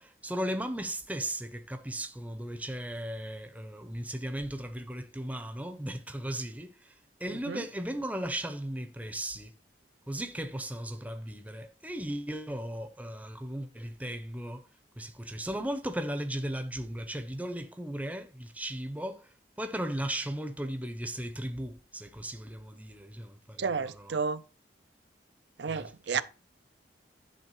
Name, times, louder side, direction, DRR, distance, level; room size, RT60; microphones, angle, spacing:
voice 1, 0.0-9.5 10.1-14.7 14.9-24.2 25.7-26.2, right 1 dB, 10° right, 0.8 m, -36 dB
voice 2, 23.6-24.4 25.6-26.2, right 5 dB, 70° right, 0.5 m, -31 dB
10.5 x 3.5 x 4.8 m
head